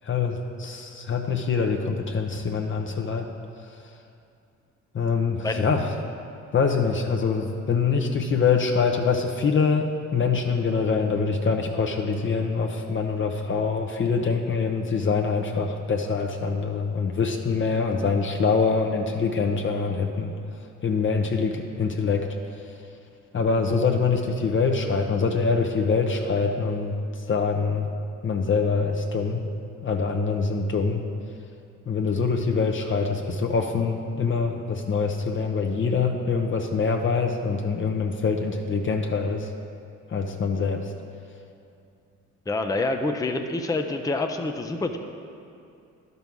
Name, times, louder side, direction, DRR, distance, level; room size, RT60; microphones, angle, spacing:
voice 1, 0.0-3.3 4.9-5.8 6.5-20.3 20.8-22.3 23.3-27.0 27.3-27.9 28.2-29.4 29.8-31.0 31.9-39.5 40.1-40.9, left 5 dB, 40° left, 2 dB, 0.8 m, -24 dB
voice 2, 42.5-45.0, left 2 dB, 10° left, 4 dB, 0.6 m, -27 dB
11.5 x 5.5 x 6.1 m, 2.5 s
cardioid pair, 90°, 30 cm